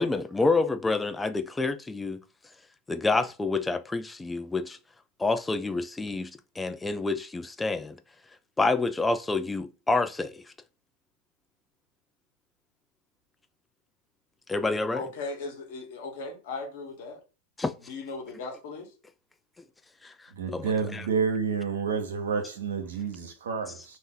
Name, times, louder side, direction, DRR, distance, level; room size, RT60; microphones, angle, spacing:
voice 1, 0.0-2.2 2.9-4.8 5.2-6.3 6.6-7.9 8.6-10.3 14.5-15.0 17.6-17.7 20.0-20.1 20.5-21.1 23.7-23.8, left 3 dB, 10° left, 0.4 m, -28 dB
voice 2, 14.9-17.2 17.9-18.9, left 3 dB, 65° left, 1.3 m, -37 dB
voice 3, 20.4-23.7, right 5 dB, 80° right, 0.8 m, -29 dB
2.6 x 2.5 x 3.7 m
hypercardioid pair, 95°, 0 cm